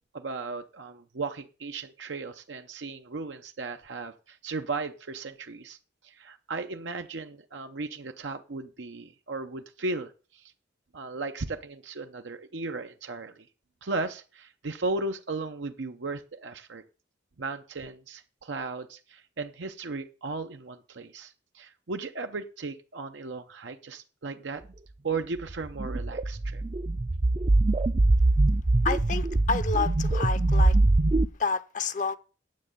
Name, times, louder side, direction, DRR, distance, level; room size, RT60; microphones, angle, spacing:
voice 1, 0.1-5.8 6.0-10.5 10.9-13.5 13.8-16.8 17.4-24.6 25.0-26.6, right 3 dB, 85° right, 0.7 m, -36 dB
sound 1, 25.5-31.2, right 2 dB, 30° right, 0.4 m, -23 dB
voice 2, 28.8-30.8 31.4-32.2, left 4 dB, 45° left, 0.6 m, -29 dB
9.6 x 7.6 x 6.6 m
head